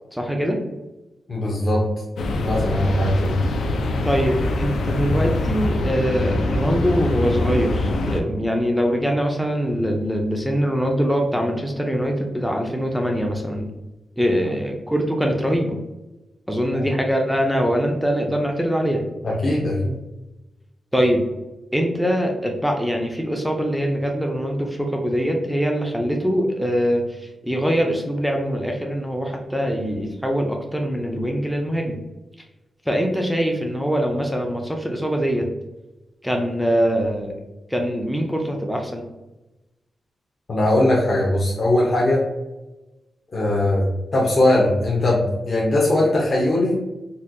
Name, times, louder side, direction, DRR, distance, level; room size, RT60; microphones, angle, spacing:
voice 1, 0.1-0.6 4.0-13.7 14.2-15.8 16.5-19.0 20.9-21.2 21.7-32.0 32.9-35.5 36.2-37.4 37.7-39.1, equal, ahead, 1 dB, 0.3 m, -23 dB
voice 2, 1.3-1.8 2.4-3.4 19.2-19.9 40.5-42.2 43.3-43.9 44.1-46.8, left 1 dB, 35° left, -5 dB, 0.6 m, -20 dB
sound 1, 2.2-8.2, left 2 dB, 80° left, 0.4 m, -23 dB
4.1 x 2.2 x 2.5 m, 1.0 s
wide cardioid pair, 160°, 0 cm